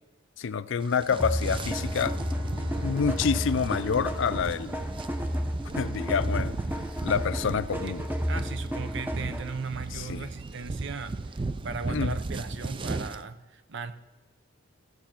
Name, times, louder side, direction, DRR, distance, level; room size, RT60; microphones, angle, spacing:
voice 1, 0.4-2.2 2.8-4.7 5.8-6.5 7.0-8.0 9.9-10.3 11.9-12.2, left 6 dB, 65° left, 0.4 m, -27 dB
sound 1, 0.8-13.2, right 3 dB, 25° right, 0.4 m, -37 dB
Bowed string instrument, 1.1-5.7, left 2 dB, 80° right, 1.9 m, -41 dB
sound 2, 1.2-9.6, equal, 10° right, 0.8 m, -32 dB
voice 2, 7.8-13.9, right 4 dB, 60° right, 0.7 m, -37 dB
16.0 x 7.9 x 4.4 m
head